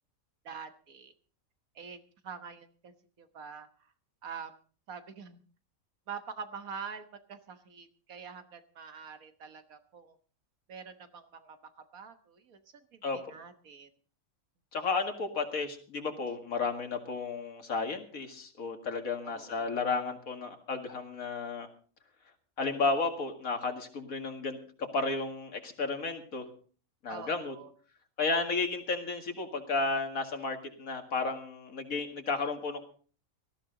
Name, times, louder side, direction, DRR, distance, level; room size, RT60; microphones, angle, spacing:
voice 1, 0.5-1.1 1.8-3.9 4.2-4.5 4.9-5.4 6.1-10.2 10.7-11.6 11.9-13.9 19.2-19.8 27.1-27.7, right 6 dB, 80° right, 9 dB, 1.7 m, -45 dB
voice 2, 14.7-21.7 22.6-26.4 27.0-27.5 28.2-32.8, left 3 dB, 75° left, 5 dB, 2.4 m, -33 dB
18.5 x 13.5 x 3.9 m, 0.41 s
omnidirectional pair, 1.5 m